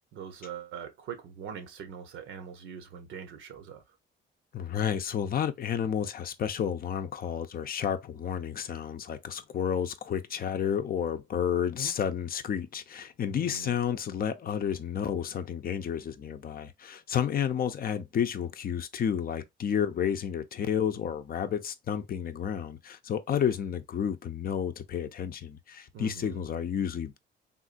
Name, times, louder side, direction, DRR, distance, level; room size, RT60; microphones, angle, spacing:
voice 1, 0.1-3.8 13.3-13.8 25.9-26.4, right 7 dB, 80° right, 0.9 m, -42 dB
voice 2, 4.5-27.2, left 8 dB, 50° left, 0.5 m, -31 dB
3.6 x 2.4 x 2.4 m
cardioid pair, 90°, 20 cm